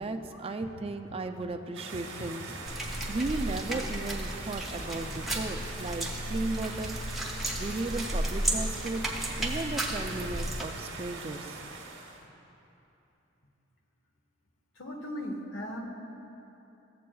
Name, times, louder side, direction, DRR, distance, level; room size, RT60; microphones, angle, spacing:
voice 1, 0.0-7.0 7.5-9.0 9.4-11.6, right 2 dB, 30° right, 6 dB, 0.4 m, -35 dB
sound 1, 1.7-12.2, right 3 dB, 75° right, 1.1 m, -42 dB
sound 2, 2.7-10.6, right 1 dB, ahead, 0.8 m, -34 dB
voice 2, 14.8-15.9, equal, 75° left, 2 dB, 1.0 m, -37 dB
15.0 x 7.5 x 2.3 m, 2.9 s
head